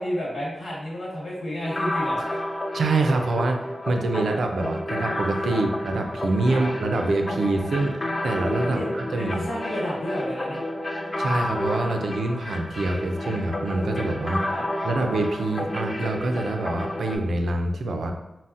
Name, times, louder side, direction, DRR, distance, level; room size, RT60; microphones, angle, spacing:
voice 1, 0.0-2.2 5.4-5.6 6.5-6.6 8.6-10.6 14.5-14.6, equal, 85° left, -7 dB, 1.3 m, -31 dB
sound 1, 1.6-17.2, left 1 dB, 25° left, 0.3 m, -30 dB
voice 2, 2.7-9.5 11.2-18.1, right 2 dB, 85° right, 4 dB, 0.3 m, -26 dB
3.9 x 2.0 x 2.5 m, 0.93 s
wide cardioid pair, 145°, 0 cm